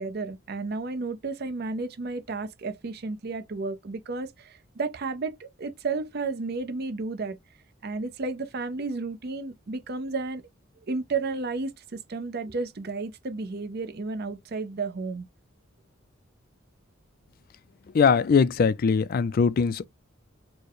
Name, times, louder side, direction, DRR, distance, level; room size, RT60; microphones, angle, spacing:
voice 1, 0.0-7.4 7.8-10.4 10.9-15.2, right 3 dB, 50° right, 0.5 m, -32 dB
voice 2, 17.9-19.9, left 5 dB, 45° left, 0.3 m, -21 dB
4.4 x 2.1 x 3.0 m
head